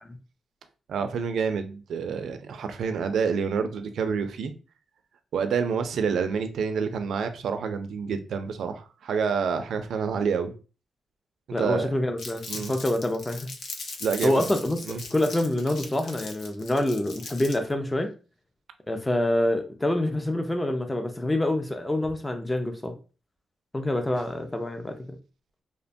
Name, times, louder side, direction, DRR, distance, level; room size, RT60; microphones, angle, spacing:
voice 1, 0.9-4.5 5.3-10.5 11.6-11.9 12.5-12.7 14.0-14.5 14.9-15.0, right 6 dB, 80° right, 0.4 m, -28 dB
voice 2, 11.5-13.5 14.2-14.9 15.1-18.1 18.9-22.9 23.7-24.9, left 1 dB, 15° left, 0.4 m, -26 dB
Crumpling crinkling, 12.2-17.7, left 3 dB, 80° left, 0.5 m, -39 dB
2.8 x 2.1 x 2.5 m
cardioid pair, 105°, 0 cm